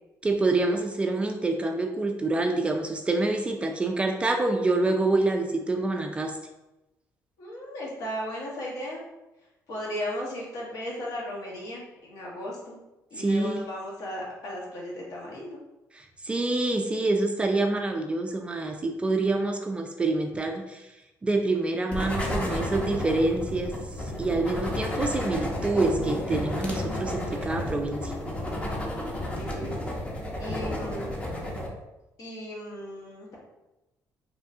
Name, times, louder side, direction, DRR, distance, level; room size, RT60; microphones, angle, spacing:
voice 1, 0.2-6.4 13.2-13.6 15.9-20.9 21.2-23.7 24.1-28.1, right 2 dB, 15° right, 4 dB, 0.3 m, -26 dB
voice 2, 7.4-9.0 9.7-12.8 13.1-15.6 29.3-29.8 30.4-31.2 32.2-33.4, equal, 65° left, -3 dB, 1.4 m, -36 dB
sound 1, 21.9-31.7, left 1 dB, 20° left, 0.7 m, -32 dB
4.7 x 3.1 x 2.7 m, 0.99 s
cardioid pair, 150°, 7 cm